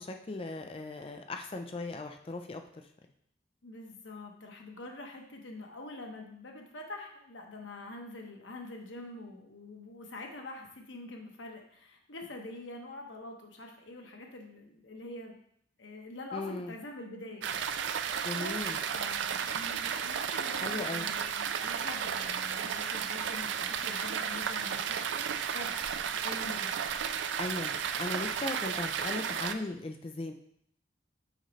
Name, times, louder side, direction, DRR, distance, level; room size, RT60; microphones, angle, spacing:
voice 1, 0.0-2.8 16.3-16.8 18.2-18.8 20.6-21.1 27.4-30.3, left 2 dB, 30° left, 5 dB, 0.4 m, -38 dB
voice 2, 3.6-15.4 15.8-18.1 18.3-18.6 18.9-25.1 25.5-25.8 26.2-27.0, left 2 dB, 85° left, 2 dB, 1.1 m, -45 dB
sound 1, 17.4-29.5, right 7 dB, 80° right, 0.4 m, -33 dB
6.4 x 5.1 x 3.2 m, 0.68 s
head